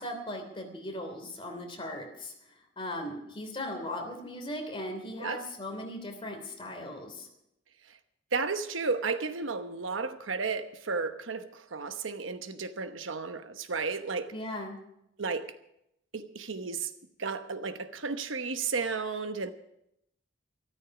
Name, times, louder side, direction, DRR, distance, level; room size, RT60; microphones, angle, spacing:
voice 1, 0.0-2.3 2.8-7.3 14.3-14.8, left 1 dB, 30° left, 3.0 m, -38 dB
voice 2, 8.3-14.3 15.2-15.5 16.1-16.9 17.2-19.5, right 4 dB, 80° right, 1.0 m, -33 dB
13.5 x 13.5 x 5.9 m
head